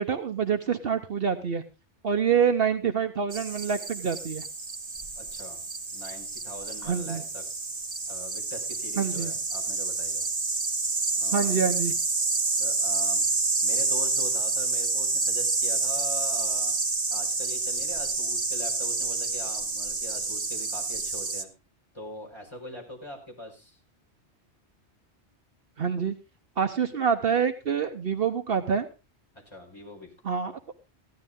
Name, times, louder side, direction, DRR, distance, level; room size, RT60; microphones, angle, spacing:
voice 1, 0.0-1.6 2.0-4.4 6.9-7.2 9.0-9.3 11.3-11.9 25.8-26.1 26.6-28.9 30.2-30.5, right 7 dB, 60° right, 9 dB, 1.1 m, -26 dB
sound 1, 3.3-21.4, right 3 dB, 25° right, 0.9 m, -28 dB
voice 2, 5.1-5.6 5.9-7.4 8.1-10.3 11.2-11.6 12.5-13.4 13.6-16.7 17.1-21.5 21.9-23.8 29.5-30.1, left 1 dB, 25° left, -1 dB, 4.8 m, -42 dB
15.0 x 12.0 x 3.6 m, 0.28 s
omnidirectional pair, 1.2 m